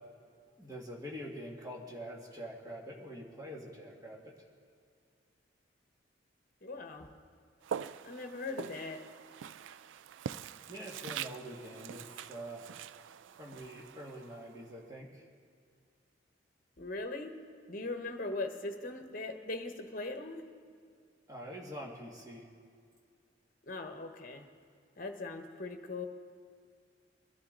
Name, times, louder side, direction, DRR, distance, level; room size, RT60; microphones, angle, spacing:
voice 1, 0.6-4.3 10.7-12.7 13.4-15.3 21.3-22.5, equal, 20° right, -2 dB, 1.8 m, -45 dB
voice 2, 6.6-7.1 8.0-9.0 16.8-17.4 17.7-20.5 23.7-24.5 25.0-26.1, left 2 dB, 45° left, 5 dB, 1.1 m, -40 dB
Walk footsteps, 7.6-14.8, right 8 dB, 80° right, 0.3 m, -44 dB
22.5 x 11.5 x 3.9 m, 2.2 s
head